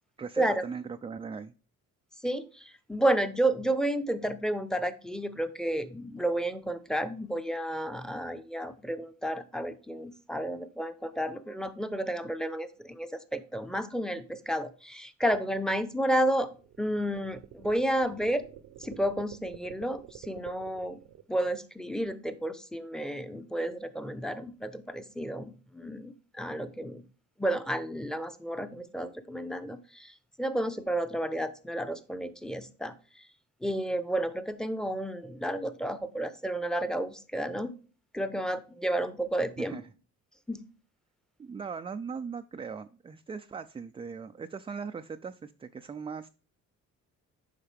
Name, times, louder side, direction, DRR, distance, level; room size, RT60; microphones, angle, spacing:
voice 1, 0.2-1.5 39.6-39.8 41.4-46.3, right 5 dB, 20° right, 0.3 m, -39 dB
voice 2, 2.2-16.5 16.8-18.5 18.8-21.0 21.3-27.0 27.4-33.3 33.6-37.7 38.1-39.8 40.5-40.6, right 1 dB, ahead, 0.7 m, -31 dB
sound 1, 15.5-21.2, right 11 dB, 80° right, 0.8 m, -49 dB
8.6 x 5.5 x 3.4 m
cardioid pair, 90°, 30 cm